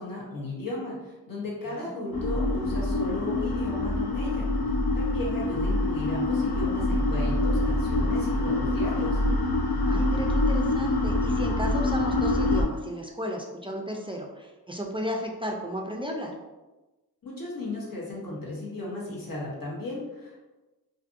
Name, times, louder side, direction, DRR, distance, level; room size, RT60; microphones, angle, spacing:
voice 1, 0.0-4.5 4.9-9.2 17.2-20.4, left 2 dB, 65° left, -4 dB, 1.0 m, -35 dB
voice 2, 1.6-2.2 9.8-16.4, equal, 15° right, 0 dB, 0.3 m, -34 dB
sound 1, 2.1-12.6, left 2 dB, 80° left, 0.5 m, -25 dB
2.5 x 2.5 x 2.5 m, 1.1 s
wide cardioid pair, 45°, 37 cm